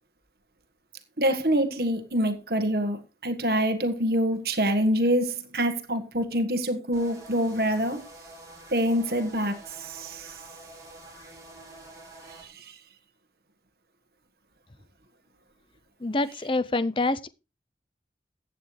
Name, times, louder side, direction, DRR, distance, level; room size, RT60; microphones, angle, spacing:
voice 1, 1.2-8.0 8.7-10.4 12.4-12.7, equal, 60° right, 1.6 m, -26 dB
sound 1, 6.9-12.4, right 2 dB, 20° right, 3.5 m, -47 dB
voice 2, 16.0-17.3, left 2 dB, 30° left, 0.6 m, -26 dB
15.0 x 8.6 x 3.3 m
head